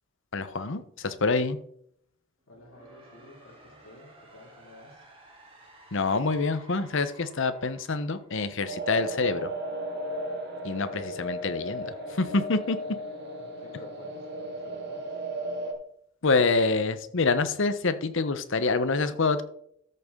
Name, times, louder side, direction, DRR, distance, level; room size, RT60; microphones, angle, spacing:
voice 1, 0.3-1.6 5.9-9.5 10.6-12.8 16.2-19.4, left 3 dB, 65° left, 12 dB, 0.9 m, -26 dB
sound 1, 2.4-9.3, right 1 dB, 25° right, 2.9 m, -55 dB
voice 2, 2.5-5.1 10.7-11.1 13.3-15.3, left 2 dB, 90° left, -1 dB, 2.5 m, -52 dB
sound 2, 8.6-15.7, right 1 dB, 55° right, 2.2 m, -35 dB
13.5 x 6.8 x 3.7 m, 0.69 s
head